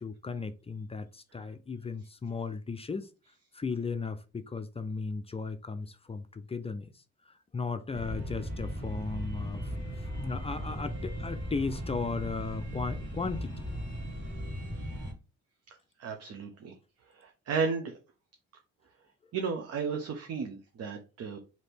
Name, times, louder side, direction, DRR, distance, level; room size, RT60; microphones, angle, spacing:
voice 1, 0.0-3.1 3.5-6.9 7.5-9.7 10.0-13.5, left 4 dB, 20° left, 0.4 m, -36 dB
sound 1, 7.9-15.1, equal, 40° right, 1.9 m, -37 dB
voice 2, 16.0-16.7 17.1-17.9 19.3-21.4, right 5 dB, 55° right, 0.8 m, -33 dB
3.3 x 2.9 x 4.3 m
cardioid pair, 90°, 30 cm